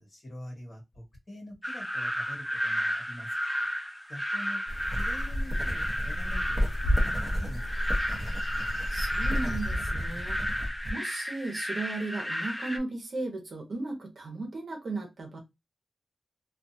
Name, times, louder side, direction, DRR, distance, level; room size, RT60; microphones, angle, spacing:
voice 1, 0.0-3.5 4.1-4.6 4.9-7.8, left 1 dB, 35° left, 1.5 m, -45 dB
sound 1, 1.6-12.8, equal, 5° left, 0.4 m, -33 dB
sound 2, 4.7-9.8, equal, 60° left, 0.5 m, -34 dB
sound 3, 4.9-10.9, equal, 25° right, 0.9 m, -32 dB
voice 2, 8.9-10.4 10.9-15.4, right 2 dB, 60° right, 1.0 m, -36 dB
2.5 x 2.4 x 2.7 m
wide cardioid pair, 135°, 0 cm